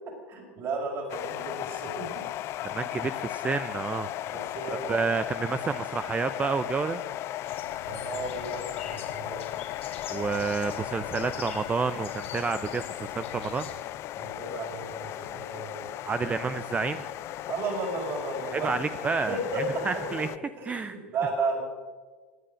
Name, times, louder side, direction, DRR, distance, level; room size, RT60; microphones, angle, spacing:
voice 1, 0.3-2.3 3.6-3.8 4.3-5.1 7.9-9.5 14.1-15.9 17.5-18.8 19.3-20.0 20.6-21.6, right 3 dB, 45° right, -1 dB, 5.6 m, -33 dB
sound 1, 1.1-20.4, left 14 dB, 45° left, 0.5 m, -36 dB
voice 2, 2.7-4.1 4.7-7.0 10.1-13.7 16.0-17.1 18.5-19.4 19.9-20.3 20.7-20.9, right 4 dB, 20° right, 12 dB, 0.6 m, -29 dB
sound 2, 7.5-13.8, left 6 dB, 80° left, 2.2 m, -45 dB
17.5 x 10.0 x 6.4 m, 1.4 s
hypercardioid pair, 90°, 6 cm